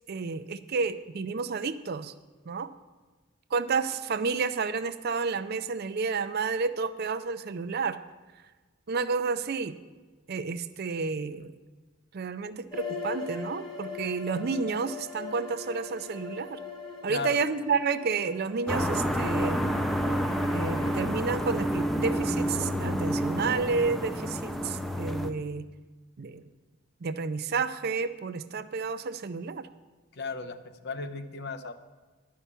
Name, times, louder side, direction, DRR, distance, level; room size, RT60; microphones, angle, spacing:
voice 1, 0.1-2.1 2.5-2.7 3.5-8.0 8.9-9.8 10.3-11.5 12.1-16.6 17.0-19.6 20.5-25.7 26.2-26.4 27.0-29.7, right 4 dB, 50° right, 12 dB, 0.5 m, -30 dB
sound 1, 12.7-21.1, left 4 dB, 20° left, 1.3 m, -41 dB
voice 2, 17.1-17.5 30.2-30.6 30.8-31.7, left 4 dB, 55° left, 9 dB, 0.7 m, -35 dB
sound 2, 18.7-25.3, equal, ahead, 0.5 m, -29 dB
11.0 x 5.7 x 8.2 m, 1.3 s
head